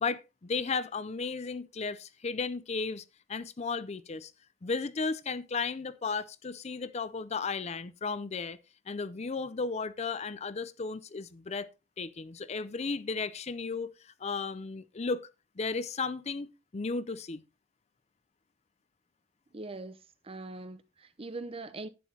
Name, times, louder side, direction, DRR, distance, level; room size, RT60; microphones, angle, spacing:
voice 1, 0.0-4.3 4.6-8.6 8.9-11.7 12.0-15.3 15.6-17.4, left 4 dB, 35° left, 0.5 m, -34 dB
voice 2, 19.5-21.9, right 2 dB, 30° right, 0.8 m, -42 dB
11.0 x 9.2 x 2.8 m
head